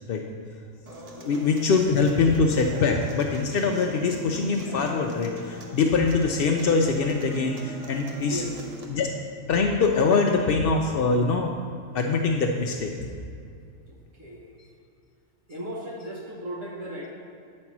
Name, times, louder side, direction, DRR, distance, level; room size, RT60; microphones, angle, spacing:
Human voice / Acoustic guitar, 0.9-8.8, right 1 dB, 35° right, 0.7 m, -41 dB
voice 1, 1.2-8.4 8.9-9.1 9.5-11.5 11.9-12.9, left 4 dB, 70° left, 2 dB, 0.5 m, -23 dB
voice 2, 8.2-8.6 13.9-14.5 15.5-17.1, right 1 dB, 65° right, -3 dB, 1.4 m, -36 dB
8.9 x 4.3 x 5.9 m, 2.4 s
omnidirectional pair, 1.5 m